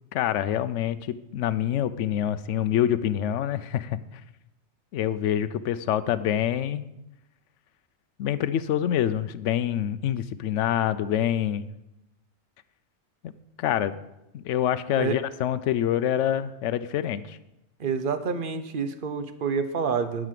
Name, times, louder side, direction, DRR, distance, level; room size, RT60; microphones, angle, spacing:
voice 1, 0.1-4.0 4.9-6.8 8.2-11.7 13.6-14.0 14.3-17.4, left 10 dB, 70° left, 14 dB, 0.9 m, -26 dB
voice 2, 17.8-20.3, right 5 dB, 45° right, 10 dB, 0.8 m, -28 dB
11.0 x 5.0 x 7.5 m, 0.91 s
omnidirectional pair, 1.4 m